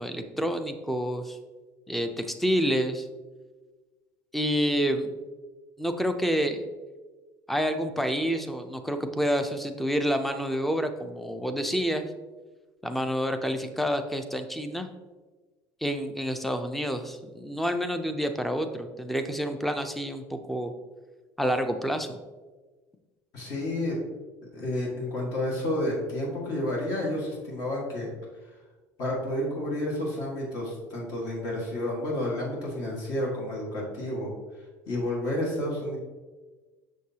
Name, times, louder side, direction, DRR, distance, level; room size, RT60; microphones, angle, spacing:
voice 1, 0.0-1.4 1.9-3.1 4.3-5.2 5.8-6.7 7.5-12.0 12.8-14.9 15.8-20.7 21.4-22.2, equal, ahead, 8 dB, 0.4 m, -28 dB
voice 2, 23.3-24.0 24.5-28.1 28.5-28.6 29.0-34.3 34.9-36.0, left 1 dB, 55° left, -3 dB, 1.6 m, -30 dB
6.6 x 6.3 x 2.8 m, 1.3 s
cardioid pair, 160°, 7 cm